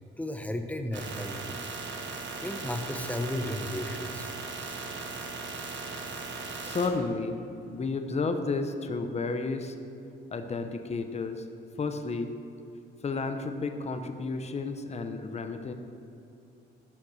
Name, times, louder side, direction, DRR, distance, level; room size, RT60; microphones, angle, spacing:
voice 1, 0.2-1.6 2.4-4.3, left 1 dB, 5° left, 6 dB, 0.9 m, -34 dB
sound 1, 0.9-6.9, right 4 dB, 65° right, 1.4 m, -38 dB
voice 2, 6.6-7.4 7.7-9.7 10.3-11.4 11.8-12.3 13.0-15.7, left 3 dB, 35° left, 7 dB, 0.9 m, -32 dB
12.0 x 5.9 x 6.4 m, 2.9 s
cardioid pair, 90°, 20 cm